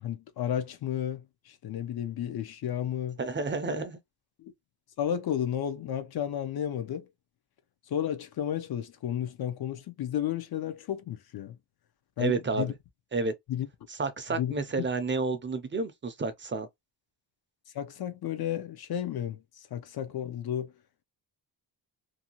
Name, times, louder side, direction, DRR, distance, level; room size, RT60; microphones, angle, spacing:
voice 1, 0.0-3.2 4.4-4.5 5.0-7.1 7.9-11.6 12.2-12.7 13.5-13.7 14.3-14.9 17.7-20.7, left 10 dB, 60° left, 0.6 m, -33 dB
voice 2, 3.2-4.0 12.2-12.7 13.1-13.3 13.9-16.7, right 4 dB, 25° right, 0.5 m, -30 dB
2.7 x 2.2 x 2.8 m
wide cardioid pair, 120°, 44 cm